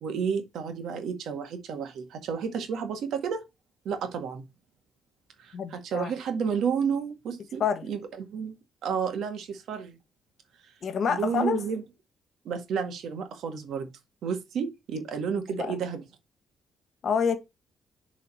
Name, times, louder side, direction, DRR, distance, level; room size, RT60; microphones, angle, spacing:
voice 1, 0.0-3.4 3.9-4.4 5.4-7.6 7.9-8.6 8.8-10.0 10.6-10.7 11.1-11.8 12.5-13.9 14.2-16.0, right 6 dB, 75° right, 1.8 m, -31 dB
voice 2, 5.5-6.1 7.6-7.9 10.8-11.6 15.6-15.8 17.0-17.4, left 7 dB, 55° left, 1.6 m, -27 dB
6.8 x 4.1 x 4.3 m
cardioid pair, 90°, 0 cm